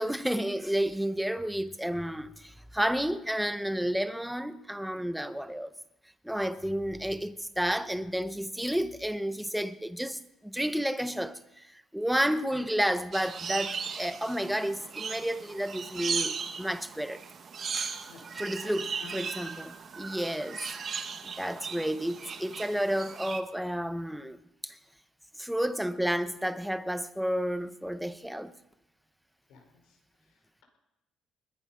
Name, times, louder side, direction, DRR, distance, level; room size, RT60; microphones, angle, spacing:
voice 1, 0.0-5.7 6.2-17.2 17.7-18.1 18.3-20.6 21.2-24.4 24.6-24.8 25.4-28.5, equal, ahead, 0.7 m, -31 dB
sound 1, 13.1-23.4, right 6 dB, 40° right, 1.1 m, -37 dB
voice 2, 18.0-18.7 19.0-19.2 21.5-21.7 29.5-30.6, left 4 dB, 85° left, 4.7 m, -54 dB
21.0 x 10.0 x 5.7 m
cardioid pair, 135°, 0 cm